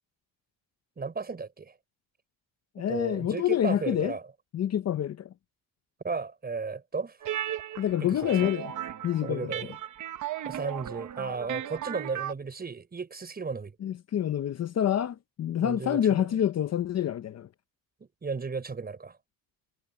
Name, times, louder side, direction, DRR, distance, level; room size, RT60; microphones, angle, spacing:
voice 1, 1.0-1.7 2.8-4.2 6.0-7.2 8.0-8.5 9.2-9.7 10.4-13.8 15.6-16.0 18.0-19.2, right 4 dB, 25° right, 5.4 m, -34 dB
voice 2, 2.8-4.1 4.5-5.3 7.8-8.7 9.0-9.5 13.8-17.5, left 10 dB, 45° left, 0.6 m, -27 dB
sound 1, 7.2-12.3, right 11 dB, 55° right, 1.1 m, -36 dB
wide cardioid pair, 170°, 36 cm